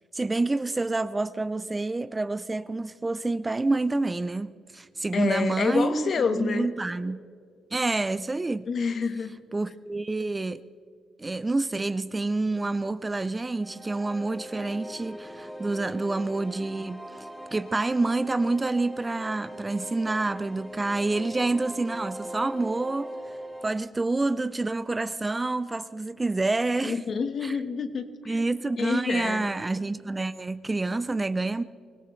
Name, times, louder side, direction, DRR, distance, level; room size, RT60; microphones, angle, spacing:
voice 1, 0.1-7.2 7.7-8.7 9.5-10.6 11.2-23.1 23.6-27.0 27.4-27.6 28.3-31.6, right 2 dB, 20° right, 0.5 m, -28 dB
voice 2, 5.1-6.7 8.7-9.4 26.8-28.4 28.8-29.5, left 5 dB, 50° left, 1.3 m, -28 dB
sound 1, 13.6-23.7, equal, ahead, 1.5 m, -40 dB
24.5 x 17.5 x 3.2 m
cardioid pair, 90°, 0 cm